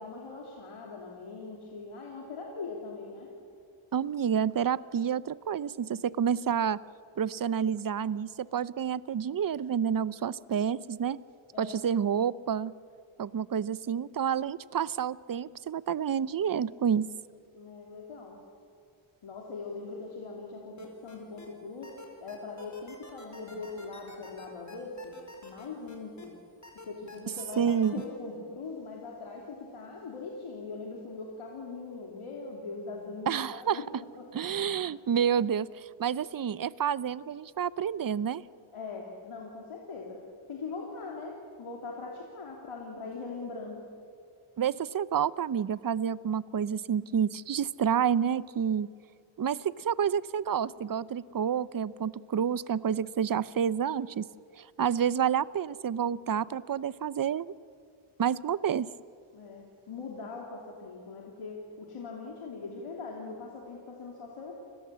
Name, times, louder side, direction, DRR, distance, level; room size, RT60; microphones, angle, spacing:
voice 1, 0.0-3.3 11.5-11.9 17.5-18.4 19.2-21.9 22.2-25.1 25.4-26.4 26.7-33.9 34.2-34.3 34.7-35.0 38.7-40.2 40.5-43.9 59.3-64.5, left 4 dB, 85° left, -1 dB, 3.1 m, -41 dB
voice 2, 3.9-6.8 7.2-11.2 11.6-12.7 13.2-17.1 27.6-27.9 33.3-33.8 34.3-38.4 44.6-48.9 49.4-54.3 54.6-57.5 58.2-58.9, right 8 dB, 45° right, 19 dB, 0.6 m, -29 dB
sound 1, 20.8-21.5 21.8-26.3 26.6-28.1, left 2 dB, 35° left, 4.6 m, -49 dB
29.5 x 20.5 x 7.6 m, 2.4 s
wide cardioid pair, 100°, 49 cm